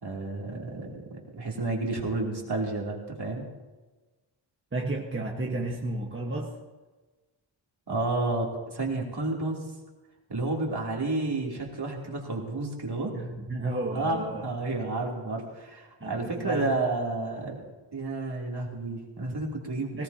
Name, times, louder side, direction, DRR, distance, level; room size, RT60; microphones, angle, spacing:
voice 1, 0.0-3.5 7.9-9.6 10.3-13.1 13.9-17.6 17.9-20.0, right 2 dB, 55° right, -2 dB, 3.0 m, -31 dB
voice 2, 4.7-6.5 13.1-14.7 16.0-17.0 17.4-17.6 19.9-20.0, right 2 dB, 25° right, -1 dB, 1.3 m, -33 dB
19.5 x 17.0 x 2.8 m, 1.2 s
wide cardioid pair, 120°, 48 cm